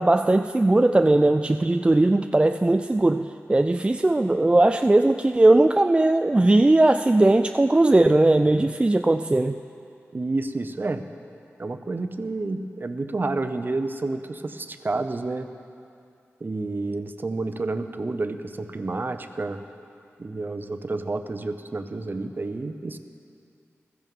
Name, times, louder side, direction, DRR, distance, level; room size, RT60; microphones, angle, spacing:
voice 1, 0.0-9.6, right 2 dB, 20° right, 7 dB, 0.3 m, -19 dB
voice 2, 10.1-11.0 11.6-15.5 16.4-19.6 20.2-23.0, right 3 dB, 40° right, 8 dB, 0.7 m, -29 dB
15.5 x 14.0 x 3.7 m, 2.5 s
wide cardioid pair, 65°, 5 cm